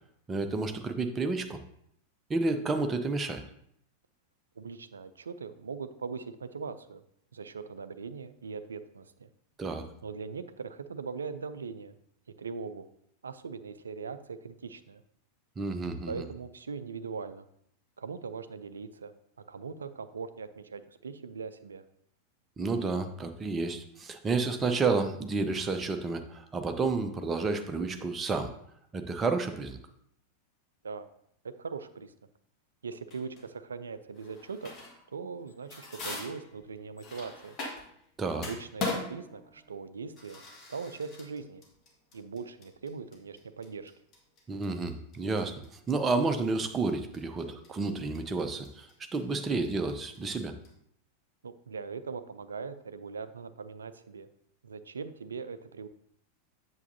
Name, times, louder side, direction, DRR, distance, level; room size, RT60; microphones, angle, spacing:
voice 1, 0.3-1.6 2.3-3.4 9.6-9.8 15.6-16.3 22.6-28.5 28.9-29.8 38.2-38.5 44.5-50.5, right 3 dB, 20° right, 6 dB, 0.7 m, -30 dB
voice 2, 4.6-7.0 7.3-9.3 10.0-11.9 12.4-12.9 13.2-15.0 16.1-17.5 18.0-19.1 19.4-21.8 30.8-31.1 31.6-32.1 32.8-34.7 35.1-37.6 38.3-40.4 40.7-41.6 42.1-43.9 51.4-54.3 54.6-55.9, right 5 dB, 70° right, 12 dB, 0.4 m, -40 dB
sound 1, 33.1-33.5 34.2-35.1 35.4-38.0 38.3-50.7, left 3 dB, 30° left, 1.6 m, -41 dB
8.2 x 7.0 x 2.7 m, 0.71 s
figure-of-eight pair, 90°, 0 cm